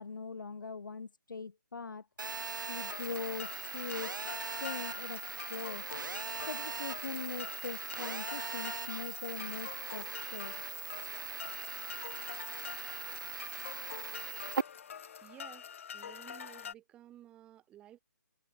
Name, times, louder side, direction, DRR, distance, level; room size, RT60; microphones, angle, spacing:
voice 1, 0.0-2.1 2.7-4.2 4.5-5.8 6.5-10.5, left 4 dB, 85° left, 2.4 m, -41 dB
Telephone, 2.2-14.6, right 5 dB, 85° right, 0.8 m, -40 dB
sound 1, 2.8-16.7, left 8 dB, 45° left, 2.6 m, -46 dB
voice 2, 15.2-18.0, right 12 dB, 10° right, 1.8 m, -55 dB
hypercardioid pair, 170°, 10 cm